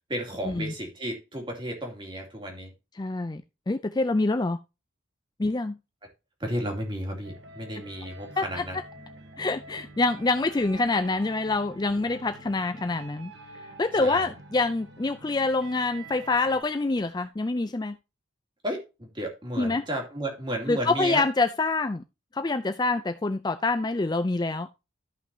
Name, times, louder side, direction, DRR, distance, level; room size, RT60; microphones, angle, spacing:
voice 1, 0.1-2.7 6.4-8.8 14.0-14.3 18.6-21.2, equal, 25° right, 2.6 m, -33 dB
voice 2, 3.0-4.6 5.4-5.8 8.4-8.6 9.4-13.3 13.8-18.0 19.6-19.8 20.7-22.0 22.3-24.7, left 3 dB, 20° left, 0.4 m, -26 dB
sound 1, 7.2-16.6, right 2 dB, 60° right, 1.7 m, -47 dB
13.0 x 5.8 x 2.8 m
head